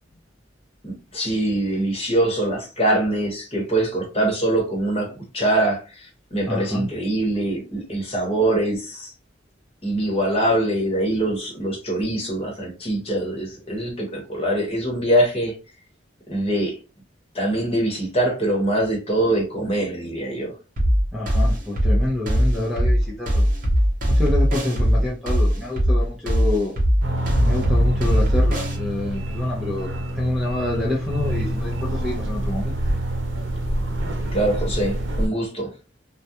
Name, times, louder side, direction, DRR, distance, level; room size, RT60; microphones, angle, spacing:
voice 1, 0.8-9.1 9.8-15.5 16.3-16.8 17.3-20.5 34.3-35.7, right 1 dB, 30° left, 1.0 m, -23 dB
voice 2, 6.5-6.9 21.1-23.5 24.1-26.7 27.4-32.7, left 1 dB, ahead, 0.6 m, -27 dB
sound 1, 20.8-28.8, equal, 45° right, 0.7 m, -19 dB
sound 2, 27.0-35.3, right 1 dB, 85° right, 0.6 m, -26 dB
2.3 x 2.2 x 2.8 m
head